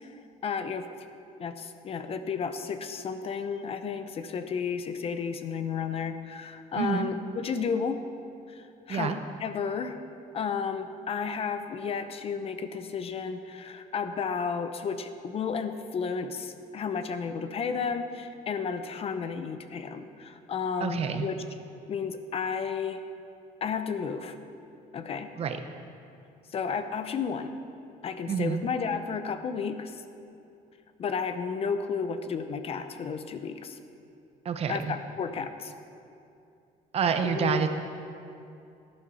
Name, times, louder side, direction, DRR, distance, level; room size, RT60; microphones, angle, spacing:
voice 1, 0.4-0.9 1.4-8.0 8.9-9.1 9.4-10.0 10.3-21.4 21.9-23.0 23.6-24.3 24.9-25.3 26.5-27.6 28.0-29.9 31.0-33.8 34.7-35.7 37.2-37.6, left 6 dB, 40° left, 9 dB, 0.7 m, -32 dB
voice 2, 6.8-7.1 8.9-9.2 20.8-21.3 25.4-25.6 28.3-28.6 34.4-34.9 36.9-37.7, right 7 dB, 40° right, 7 dB, 0.9 m, -28 dB
17.5 x 10.5 x 4.1 m, 2.6 s
cardioid pair, 140°, 15 cm